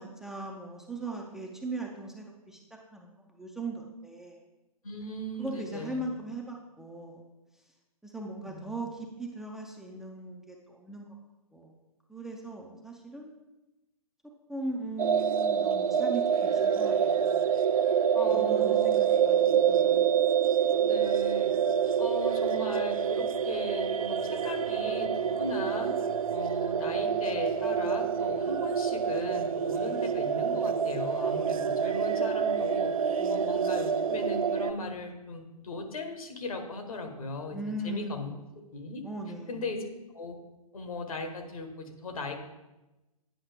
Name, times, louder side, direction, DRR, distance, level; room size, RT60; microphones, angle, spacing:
voice 1, 0.0-2.6 2.9-4.4 5.4-7.2 8.0-11.1 11.5-11.8 12.1-13.3 14.5-17.5 18.3-19.9 29.7-30.0 33.2-33.5 37.5-38.6 39.0-39.6, right 2 dB, ahead, -1 dB, 0.4 m, -39 dB
voice 2, 4.8-6.0 8.4-8.8 18.1-18.9 19.8-20.0 20.8-21.5 22.0-25.9 26.3-32.9 33.3-37.6 37.8-38.3 38.7-39.0 39.5-39.8 40.1-40.4 40.7-42.3, left 2 dB, 65° left, 4 dB, 1.3 m, -38 dB
sound 1, 15.0-34.7, right 7 dB, 65° right, 0.5 m, -27 dB
8.9 x 5.5 x 3.4 m, 1.0 s
figure-of-eight pair, 120°, 19 cm